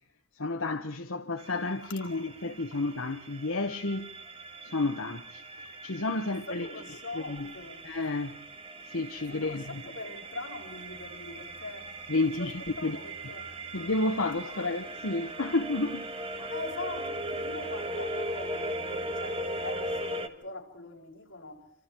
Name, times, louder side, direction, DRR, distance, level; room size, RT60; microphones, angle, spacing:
voice 1, 0.3-4.1 4.6-6.7 7.1-7.5 7.8-8.4 8.8-9.8 12.1-13.0 13.7-16.1 16.4-16.5, left 2 dB, 85° left, 1.2 m, -31 dB
sound 1, 1.4-20.3, right 1 dB, 25° right, 1.8 m, -39 dB
voice 2, 1.8-2.2 2.7-2.8 6.3-7.9 9.3-13.5 14.4-14.7 16.5-21.7, left 2 dB, 60° left, 6.0 m, -42 dB
28.5 x 26.5 x 4.6 m
head